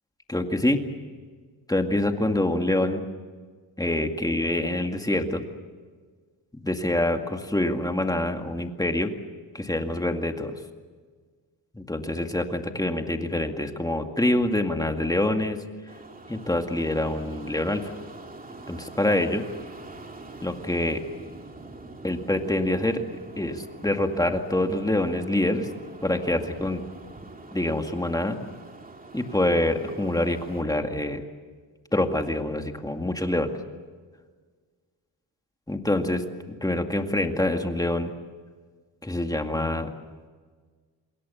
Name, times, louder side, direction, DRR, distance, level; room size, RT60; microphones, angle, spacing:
voice 1, 0.3-0.8 1.7-3.0 3.8-5.4 6.5-9.1 9.5-10.6 11.7-15.6 16.3-17.9 18.7-19.4 20.4-21.0 22.0-23.0 23.4-25.7 26.0-26.8 27.5-28.4 29.1-31.2 31.9-33.5 35.7-36.2 36.6-38.1 39.0-39.9, left 1 dB, 10° left, 5 dB, 2.1 m, -25 dB
sound 1, 15.9-30.6, right 2 dB, 20° right, 2.5 m, -44 dB
27.5 x 22.0 x 7.1 m, 1.5 s
cardioid pair, 115°, 46 cm